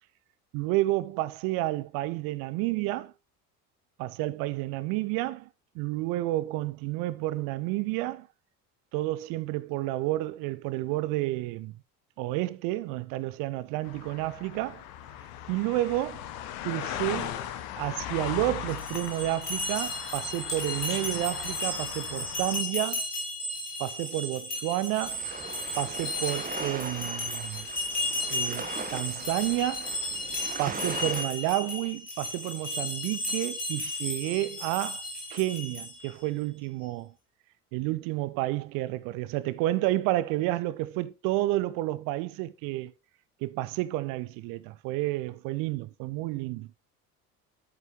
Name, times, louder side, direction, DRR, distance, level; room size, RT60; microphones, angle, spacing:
voice 1, 0.5-3.1 4.0-5.5 5.7-8.3 8.9-11.8 12.2-14.8 15.5-16.3 16.6-17.4 17.8-23.0 23.8-25.2 25.7-27.7 28.3-29.9 30.6-35.0 35.3-37.1 37.7-42.9 43.4-46.7, right 17 dB, 45° right, 0.7 m, -30 dB
sound 1, 13.8-22.6, left 11 dB, 50° left, 1.1 m, -38 dB
sound 2, 18.7-36.1, left 2 dB, 85° left, 2.8 m, -34 dB
sound 3, 25.0-31.3, right 4 dB, 20° right, 1.2 m, -39 dB
9.1 x 8.3 x 3.1 m
figure-of-eight pair, 60°, 46 cm